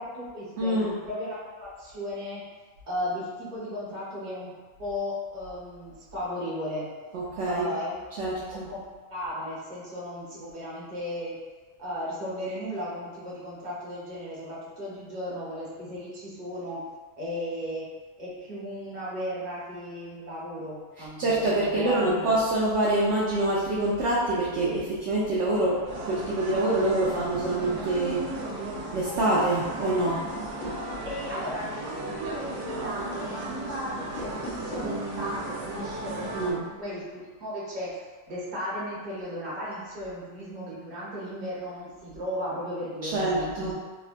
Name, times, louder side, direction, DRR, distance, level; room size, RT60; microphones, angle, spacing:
voice 1, 0.0-2.4 2.9-4.5 4.8-6.9 7.4-8.0 8.5-8.8 9.1-11.3 11.8-16.8 17.2-17.8 18.2-22.3 31.0-37.0 37.4-37.9 38.3-43.7, equal, 35° right, -8 dB, 0.9 m, -35 dB
voice 2, 0.6-0.9 7.1-7.7 8.2-8.7 21.2-28.3 28.9-30.3 36.3-36.6 43.0-43.7, right 1 dB, 70° right, -7 dB, 0.7 m, -26 dB
sound 1, 24.6-24.8 26.3-26.7 27.1-27.9 30.4-31.1 34.0-35.0, left 1 dB, 75° left, 1.1 m, -40 dB
sound 2, 25.9-36.5, right 2 dB, 85° right, 1.2 m, -35 dB
3.5 x 2.1 x 2.4 m, 1.4 s
omnidirectional pair, 1.6 m